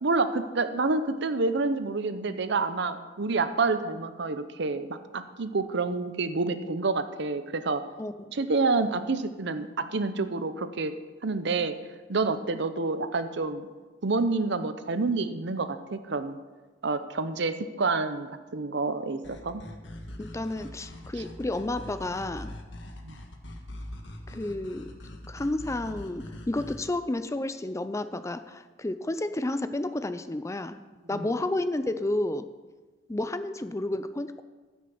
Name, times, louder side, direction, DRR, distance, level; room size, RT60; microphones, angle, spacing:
voice 1, 0.0-7.8 8.3-10.9 11.2-11.7 12.1-13.7 14.0-16.4 16.8-19.6 23.0-23.2 31.1-31.3, right 3 dB, 65° right, 10 dB, 0.8 m, -28 dB
sound 1, 19.2-26.9, left 1 dB, 70° left, 1.4 m, -42 dB
voice 2, 20.2-22.5 24.3-24.9 25.3-30.8 31.1-32.5 33.1-34.4, left 1 dB, 15° left, 11 dB, 0.5 m, -31 dB
14.5 x 6.3 x 7.1 m, 1.3 s
head